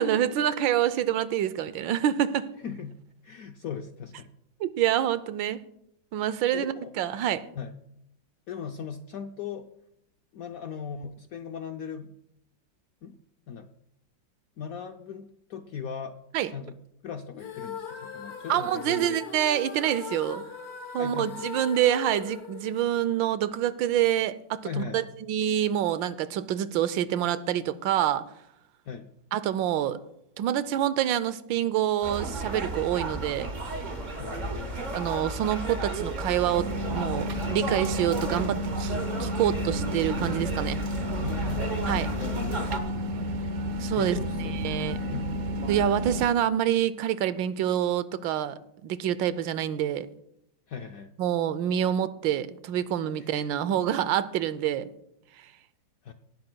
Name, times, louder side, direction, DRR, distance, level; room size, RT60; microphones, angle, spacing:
voice 1, 0.0-2.5 4.6-5.6 6.1-7.5 16.3-16.5 18.5-20.4 20.9-28.3 29.3-30.0 30.4-33.5 34.9-40.8 41.9-42.1 43.8-45.0 45.7-50.1 51.2-54.9, right 11 dB, 85° right, 15 dB, 1.3 m, -27 dB
voice 2, 2.6-4.3 6.5-6.9 7.5-7.8 8.5-9.7 10.3-12.1 13.0-13.2 13.5-13.7 14.6-16.2 16.5-19.2 21.0-21.5 24.6-25.0 28.9-29.1 34.2-34.8 41.2-41.8 42.2-43.2 43.9-45.3 50.7-51.1 53.2-53.3 56.0-56.1, left 7 dB, 75° left, 6 dB, 0.8 m, -38 dB
sound 1, 17.3-23.5, left 6 dB, 45° left, 1.1 m, -40 dB
sound 2, 32.0-42.8, right 2 dB, 30° right, 0.9 m, -34 dB
sound 3, 36.6-46.3, equal, 60° right, 1.1 m, -31 dB
18.0 x 12.0 x 2.2 m, 0.78 s
omnidirectional pair, 2.0 m